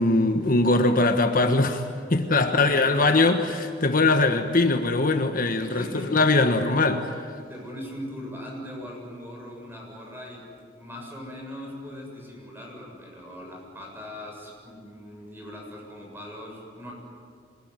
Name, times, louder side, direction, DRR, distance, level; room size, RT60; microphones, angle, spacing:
voice 1, 0.0-1.8 2.1-7.0, left 2 dB, 50° left, 6 dB, 1.3 m, -21 dB
voice 2, 2.5-3.1 5.6-6.3 7.5-10.5 10.7-16.9, left 1 dB, 10° right, -1 dB, 7.4 m, -40 dB
26.5 x 21.0 x 9.6 m, 2.3 s
head